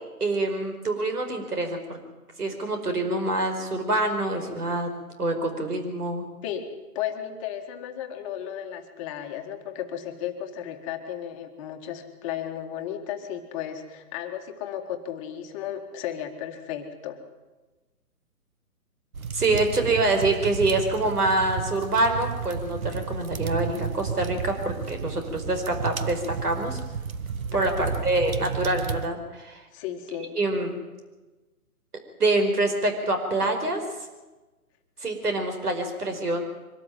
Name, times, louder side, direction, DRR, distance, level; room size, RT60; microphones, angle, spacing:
voice 1, 0.2-2.0 2.4-4.9 5.2-6.3 19.3-26.8 27.5-29.6 30.4-30.7 32.2-33.8 35.0-36.4, right 2 dB, 80° right, 6 dB, 5.1 m, -26 dB
voice 2, 6.9-17.2 27.5-27.9 29.7-30.3, left 10 dB, 20° left, 5 dB, 1.7 m, -34 dB
sound 1, 19.1-29.1, right 6 dB, 65° right, 1.4 m, -32 dB
23.5 x 13.0 x 9.2 m, 1.2 s
hypercardioid pair, 145°, 45 cm